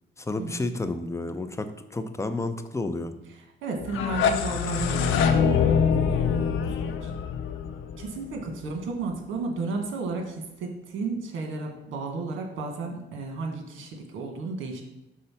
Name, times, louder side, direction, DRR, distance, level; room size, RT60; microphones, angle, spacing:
voice 1, 0.2-3.1, left 2 dB, 15° left, 9 dB, 0.6 m, -31 dB
voice 2, 3.6-7.1 8.0-14.8, right 3 dB, 80° right, 3 dB, 1.4 m, -33 dB
sound 1, 3.8-8.7, left 6 dB, 85° left, 0.6 m, -24 dB
5.5 x 3.8 x 5.7 m, 0.94 s
cardioid pair, 90°, 20 cm